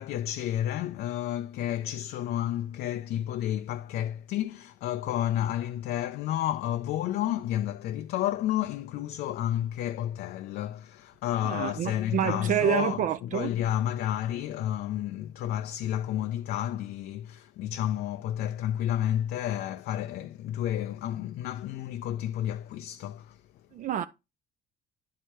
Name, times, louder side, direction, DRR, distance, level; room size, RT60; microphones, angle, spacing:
voice 1, 0.0-23.4, left 12 dB, 70° left, 0.4 m, -31 dB
voice 2, 11.4-13.5 23.7-24.1, right 10 dB, 50° right, 0.4 m, -28 dB
10.0 x 4.7 x 2.9 m
cardioid pair, 110°, 17 cm